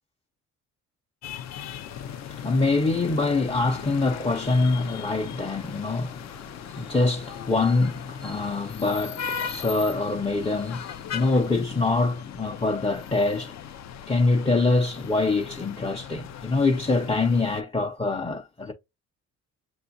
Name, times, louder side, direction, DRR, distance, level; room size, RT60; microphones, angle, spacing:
sound 1, 1.2-17.6, left 8 dB, 60° left, 0.5 m, -38 dB
voice 1, 1.8-13.5 14.1-18.7, left 3 dB, 15° left, 0.7 m, -25 dB
7.0 x 2.4 x 2.6 m
cardioid pair, 90°, 30 cm